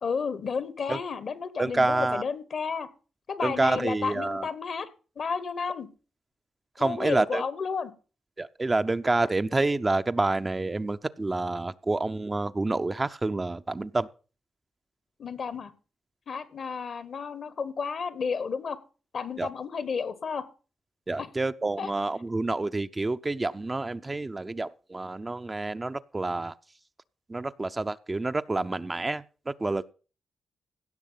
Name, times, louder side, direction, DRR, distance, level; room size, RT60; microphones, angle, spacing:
voice 1, 0.0-2.9 3.3-4.9 5.2-5.9 6.8-7.9 15.2-15.7 16.3-18.8 19.1-20.4 21.2-21.3 21.8-21.9, left 5 dB, 60° left, 1.3 m, -32 dB
voice 2, 1.6-2.2 3.4-4.5 6.8-7.4 8.4-14.1 19.4-19.5 21.1-26.5 27.3-29.8, right 2 dB, 30° right, 0.6 m, -28 dB
16.5 x 6.3 x 5.7 m
supercardioid pair, 50°, 0 cm